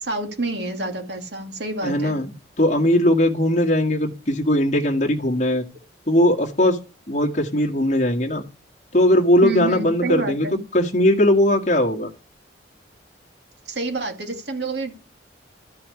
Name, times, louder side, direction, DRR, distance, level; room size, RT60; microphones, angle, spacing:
voice 1, 0.0-2.2 9.4-10.6 13.7-15.0, right 2 dB, 65° right, 5 dB, 2.4 m, -28 dB
voice 2, 1.8-2.3 2.6-5.6 6.1-6.8 7.1-8.4 8.9-10.5 10.7-12.1, left 1 dB, 35° left, 0 dB, 1.7 m, -19 dB
13.0 x 5.7 x 8.2 m, 0.31 s
head